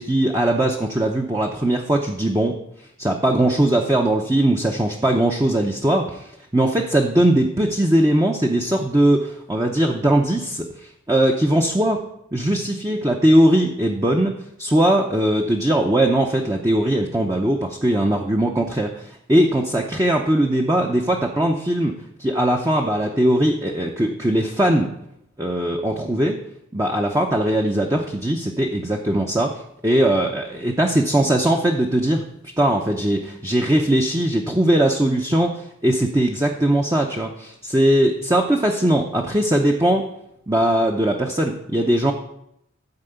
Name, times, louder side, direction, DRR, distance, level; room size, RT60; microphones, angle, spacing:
voice 1, 0.0-12.0 12.3-14.3 14.6-24.9 25.4-26.4 26.7-32.2 32.6-40.0 40.5-42.1, right 1 dB, 15° right, 1 dB, 0.7 m, -20 dB
13.5 x 4.8 x 7.9 m, 0.79 s
head